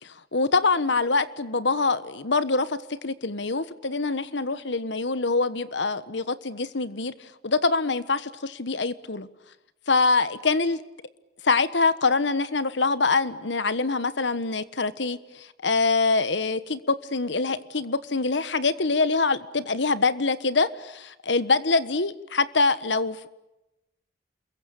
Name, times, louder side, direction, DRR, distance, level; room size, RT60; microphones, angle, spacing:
voice 1, 0.0-7.1 7.4-9.3 9.9-10.8 11.5-23.3, left 3 dB, 80° left, 14 dB, 1.4 m, -24 dB
28.0 x 22.5 x 8.8 m, 0.94 s
head